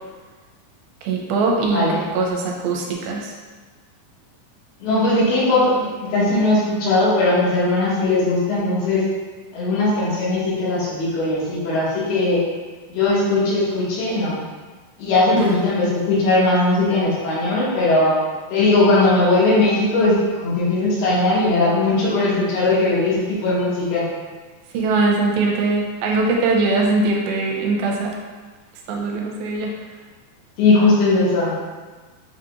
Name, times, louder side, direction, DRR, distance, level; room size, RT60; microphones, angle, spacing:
voice 1, 1.0-3.3 15.3-15.5 24.7-28.2 28.9-29.8, right 3 dB, 85° right, -1 dB, 2.4 m, -21 dB
voice 2, 1.7-2.1 4.8-9.0 9.5-12.4 12.9-14.4 15.0-18.2 18.5-24.1 30.6-31.5, left 2 dB, 90° left, -7 dB, 3.2 m, -19 dB
7.1 x 2.9 x 2.4 m, 1.4 s
omnidirectional pair, 4.4 m